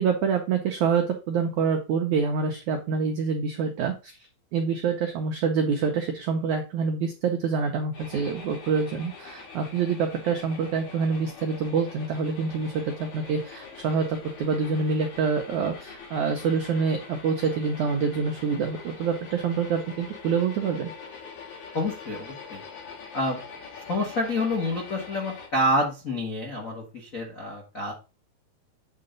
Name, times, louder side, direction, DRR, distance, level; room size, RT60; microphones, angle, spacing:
voice 1, 0.0-4.1 4.5-20.9, right 5 dB, 80° right, 4 dB, 1.7 m, -26 dB
sound 1, 7.9-25.5, left 5 dB, 50° left, 3.0 m, -44 dB
voice 2, 21.7-22.6 23.1-23.4 23.9-27.9, left 1 dB, 80° left, -2 dB, 0.7 m, -28 dB
9.1 x 3.9 x 5.3 m, 0.30 s
omnidirectional pair, 4.8 m